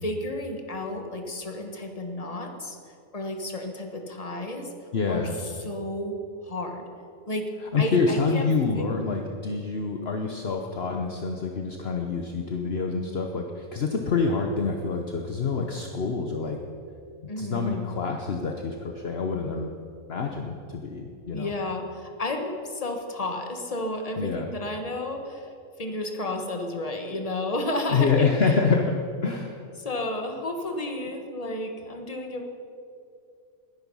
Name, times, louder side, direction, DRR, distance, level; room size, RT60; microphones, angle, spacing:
voice 1, 0.0-2.8 3.1-4.7 5.1-5.3 5.6-6.8 7.3-7.5 7.8-8.5 8.7-8.8 17.3-17.8 21.3-25.5 25.8-28.5 29.8-32.5, left 1 dB, 25° left, 3 dB, 1.6 m, -32 dB
voice 2, 4.9-5.4 7.7-16.6 17.2-19.8 20.1-21.5 24.2-24.5 27.9-29.6, left 4 dB, 50° left, 3 dB, 1.2 m, -27 dB
20.0 x 11.0 x 5.5 m, 2.4 s
omnidirectional pair, 1.4 m